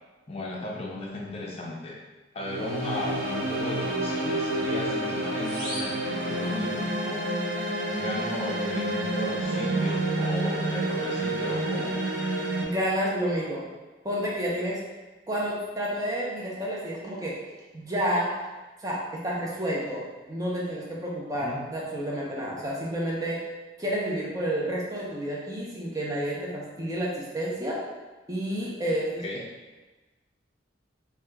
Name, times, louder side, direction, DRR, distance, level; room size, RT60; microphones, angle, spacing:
voice 1, 0.3-2.0 2.3-7.2 7.9-12.0 21.4-21.6 29.2-29.4, left 1 dB, 30° left, -3 dB, 0.5 m, -35 dB
sound 1, 2.4-12.6, right 1 dB, 80° right, 0.5 m, -29 dB
sound 2, 5.4-7.0, equal, 60° right, 1.1 m, -40 dB
voice 2, 12.6-13.7 14.0-14.8 15.3-17.4 17.7-18.3 18.8-20.0 20.3-23.4 23.8-27.8 28.3-29.2, equal, 20° right, -4 dB, 0.6 m, -30 dB
2.8 x 2.3 x 3.4 m, 1.2 s
head